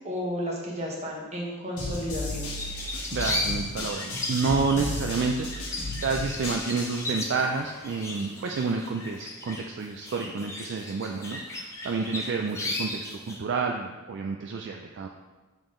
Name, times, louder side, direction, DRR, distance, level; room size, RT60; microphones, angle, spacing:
voice 1, 0.0-2.5, equal, 30° right, -2 dB, 1.1 m, -32 dB
sound 1, 1.8-7.1, left 2 dB, 75° left, 1.2 m, -34 dB
sound 2, 2.6-13.4, left 1 dB, 15° left, 0.6 m, -36 dB
voice 2, 3.1-15.1, right 4 dB, 50° right, 2 dB, 0.3 m, -29 dB
7.0 x 3.7 x 3.7 m, 1.2 s
head